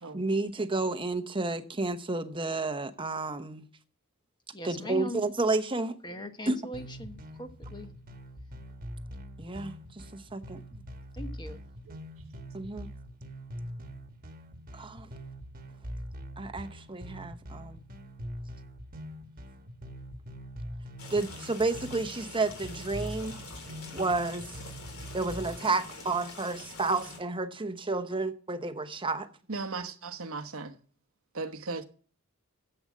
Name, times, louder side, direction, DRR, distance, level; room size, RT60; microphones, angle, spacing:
voice 1, 0.1-3.6 4.6-6.0 6.5-6.6 9.4-9.7 10.1-10.6 12.5-12.9 14.7-15.1 16.4-17.8 21.1-23.4 23.9-24.5 25.1-29.3, right 3 dB, 25° right, 1.0 m, -31 dB
voice 2, 4.5-5.3 6.0-7.9 11.1-11.6, left 1 dB, 20° left, 1.1 m, -40 dB
sound 1, 6.7-25.6, equal, 40° right, 1.4 m, -43 dB
sound 2, 21.0-27.2, left 3 dB, 70° left, 3.9 m, -45 dB
voice 3, 29.5-30.8 31.3-31.9, right 3 dB, 70° right, 1.1 m, -37 dB
10.5 x 7.9 x 7.3 m
head